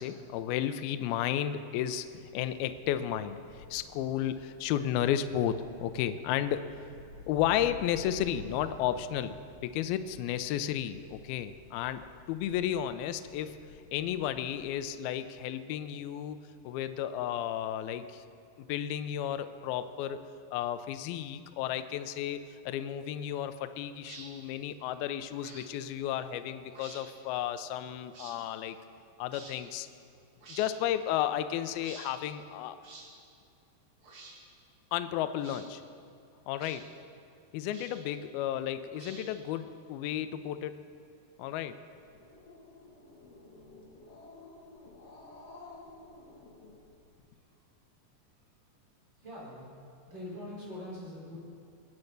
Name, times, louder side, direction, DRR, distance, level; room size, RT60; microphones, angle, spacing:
voice 1, 0.0-2.1 2.3-3.4 3.7-6.7 7.3-13.6 13.9-18.2 18.6-20.2 20.5-28.8 29.2-29.9 30.5-32.8 34.9-35.8 36.5-36.9 37.5-40.8 41.4-41.8, left 11 dB, 80° left, 10 dB, 2.2 m, -33 dB
sound 1, 1.9-14.9, left 2 dB, 75° right, 7.4 m, -52 dB
sound 2, 24.0-24.3 25.4-25.7 26.7-27.0 28.1-28.4 29.3-29.6 30.4-30.7 31.8-32.1 32.8-33.1 34.0-34.4 35.4-35.7 36.6-36.8 37.7-38.1 38.9-39.5, right 3 dB, 45° right, 1.8 m, -49 dB
Growling, 42.0-47.3, left 2 dB, 45° left, 2.7 m, -52 dB
voice 2, 49.2-49.8 50.0-51.4, left 1 dB, 25° right, -5 dB, 4.3 m, -43 dB
23.5 x 8.6 x 6.6 m, 2.5 s
omnidirectional pair, 5.0 m